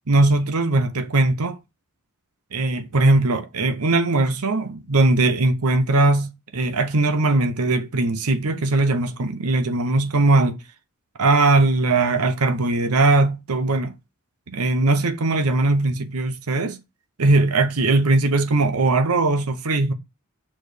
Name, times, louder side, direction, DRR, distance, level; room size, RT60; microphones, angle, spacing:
voice 1, 0.1-1.6 2.5-10.6 11.2-13.9 14.5-16.8 17.2-19.9, right 2 dB, 90° right, 0.8 m, -20 dB
6.5 x 3.2 x 5.0 m
head